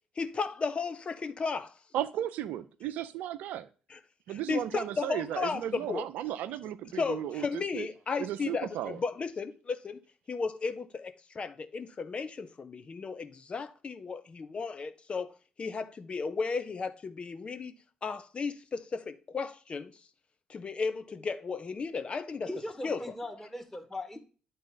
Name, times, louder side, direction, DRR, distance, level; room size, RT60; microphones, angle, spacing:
voice 1, 0.2-1.7 3.9-4.0 4.3-6.0 6.9-10.0 10.3-17.8 18.0-19.9 20.5-22.5 22.8-23.0, left 4 dB, 40° left, 0.8 m, -34 dB
voice 2, 1.9-3.7 4.3-7.9 8.2-9.0, right 12 dB, 70° right, 0.5 m, -35 dB
voice 3, 22.4-24.2, left 1 dB, 10° left, 1.8 m, -39 dB
9.6 x 4.1 x 3.9 m
hypercardioid pair, 50°, 3 cm